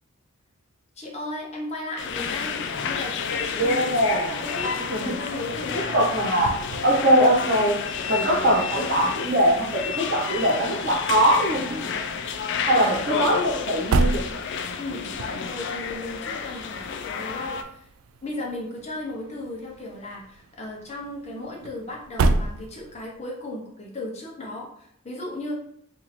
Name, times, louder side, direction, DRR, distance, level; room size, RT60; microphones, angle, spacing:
voice 1, 1.0-4.0 4.3-6.0 12.6-12.9 14.8-17.9 18.2-25.5, left 2 dB, 30° left, -2 dB, 0.9 m, -36 dB
sound 1, 2.0-17.6, left 6 dB, 55° left, 0.3 m, -30 dB
voice 2, 3.6-4.4 4.9-5.1 5.9-6.5 6.8-7.7 8.1-12.0 12.7-14.3, right 1 dB, 45° right, -3 dB, 1.0 m, -22 dB
sound 2, 5.2-23.2, right 3 dB, 75° right, 0.3 m, -33 dB
2.8 x 2.6 x 4.1 m, 0.70 s
head